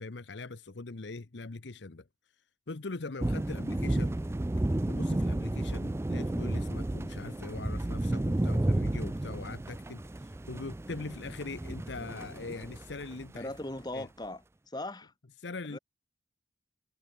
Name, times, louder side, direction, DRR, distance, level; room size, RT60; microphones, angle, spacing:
voice 1, 0.0-2.1 2.7-4.1 4.9-13.5 13.9-14.1 15.4-15.8, left 3 dB, 70° left, 0.9 m, -42 dB
sound 1, 3.2-13.3, right 1 dB, 15° right, 0.4 m, -32 dB
voice 2, 13.3-15.1 15.7-15.8, left 1 dB, 25° left, 2.6 m, -39 dB
head